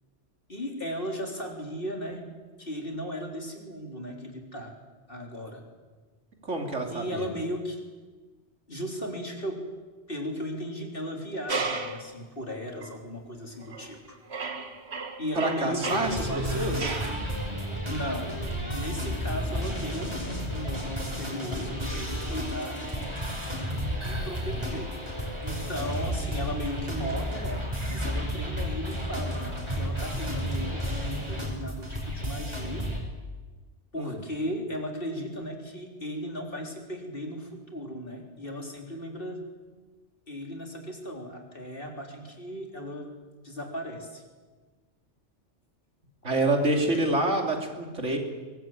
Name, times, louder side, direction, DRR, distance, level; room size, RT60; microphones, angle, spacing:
voice 1, 0.5-2.3 2.6-4.7 5.1-5.6 6.9-7.8 8.7-9.6 10.1-14.2 15.2-16.4 17.8-18.3 18.7-22.8 24.0-24.9 25.4-27.6 27.9-32.9 33.9-39.4 40.3-43.1 43.4-44.2, equal, 50° left, 2 dB, 3.8 m, -36 dB
voice 2, 6.4-7.2 15.3-16.3 16.5-17.0 34.0-34.2 46.2-48.2, right 2 dB, 80° right, 3 dB, 3.4 m, -27 dB
sound 1, 11.5-12.1 12.8-13.0 13.6-14.0 14.3-17.2, right 4 dB, 60° right, 2.0 m, -34 dB
sound 2, 15.8-33.0, equal, 25° right, 5.2 m, -32 dB
23.0 x 20.0 x 8.8 m, 1.3 s
omnidirectional pair, 1.2 m